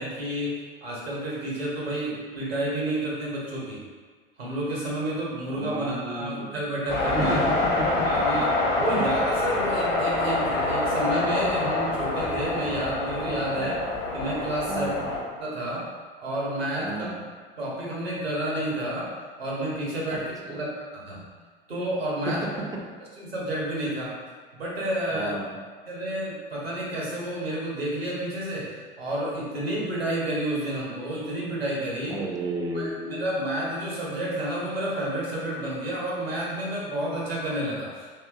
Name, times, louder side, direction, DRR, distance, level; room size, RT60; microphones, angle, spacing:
voice 1, 0.0-3.8 4.4-7.4 8.0-13.8 14.1-14.9 15.4-15.9 16.2-16.9 17.6-19.1 19.4-21.2 21.7-22.5 23.2-24.1 24.6-25.4 25.9-32.2 32.7-38.2, right 1 dB, 85° right, -5 dB, 0.9 m, -30 dB
voice 2, 5.6-6.6 7.1-8.4 8.9-9.0 13.5-13.7 14.7-15.0 16.8-17.2 20.1-20.2 20.5-20.6 22.3-22.8 25.1-25.6 32.1-33.3, right 2 dB, 15° right, 0 dB, 0.4 m, -33 dB
sound 1, 6.9-15.2, left 2 dB, 35° left, 0.8 m, -26 dB
3.4 x 2.7 x 2.3 m, 1.5 s
figure-of-eight pair, 75°, 30 cm